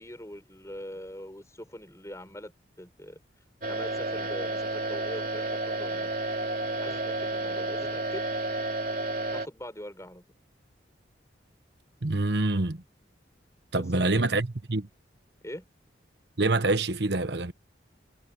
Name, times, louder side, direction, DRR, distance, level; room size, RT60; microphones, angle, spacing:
voice 1, 0.0-2.5 2.8-3.2 3.7-6.1 6.8-8.2 9.3-10.2 13.7-14.2 15.4-15.7, equal, 15° left, 4.9 m, -42 dB
sound 1, 3.6-9.5, right 2 dB, 50° right, 3.4 m, -31 dB
voice 2, 12.0-12.8 13.7-14.9 16.4-17.5, right 2 dB, 65° right, 1.1 m, -26 dB
head